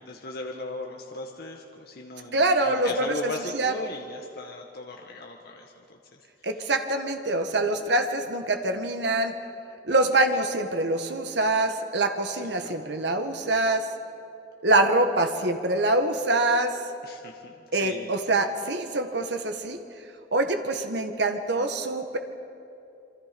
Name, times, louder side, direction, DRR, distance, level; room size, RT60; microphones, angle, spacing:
voice 1, 0.0-6.2 6.5-6.7 12.4-12.8 17.0-18.1, left 2 dB, 60° left, 1 dB, 1.6 m, -38 dB
voice 2, 2.3-3.7 6.4-9.3 9.9-13.9 14.6-16.8 17.7-19.8 20.3-22.2, right 2 dB, 85° right, 5 dB, 1.7 m, -25 dB
28.0 x 24.5 x 5.3 m, 2.7 s
head